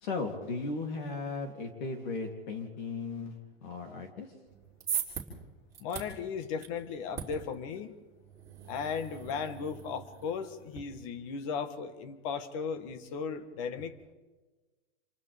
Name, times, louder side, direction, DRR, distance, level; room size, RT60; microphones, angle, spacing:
voice 1, 0.0-4.3, left 3 dB, 50° left, 2 dB, 3.1 m, -36 dB
sound 1, 4.5-10.8, right 8 dB, 10° right, 3.3 m, -41 dB
voice 2, 5.8-7.9 8.7-13.9, left 6 dB, 35° left, 10 dB, 1.5 m, -36 dB
29.0 x 27.5 x 3.5 m, 1.3 s
supercardioid pair, 165°, 30 cm